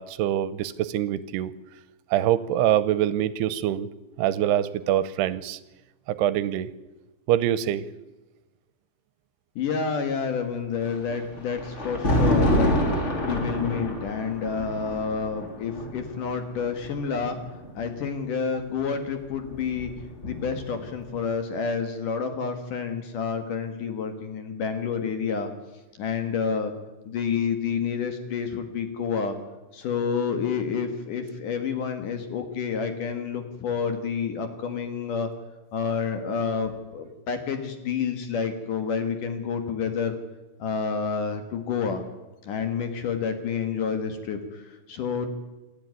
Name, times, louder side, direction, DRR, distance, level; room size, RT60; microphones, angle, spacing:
voice 1, 0.0-1.5 2.1-3.9 4.2-5.6 6.1-6.7 7.3-7.9, right 12 dB, 80° right, 16 dB, 2.7 m, -24 dB
voice 2, 9.6-12.7 13.2-17.4 17.7-19.9 20.2-25.5 26.0-26.7 27.0-29.4 29.7-35.3 35.7-40.2 40.6-42.0 42.4-45.3, left 6 dB, 60° left, 7 dB, 2.8 m, -29 dB
Thunder, 10.8-18.0 19.1-20.8, left 1 dB, 25° left, 1.7 m, -27 dB
27.5 x 10.5 x 9.5 m, 1.1 s
omnidirectional pair, 4.8 m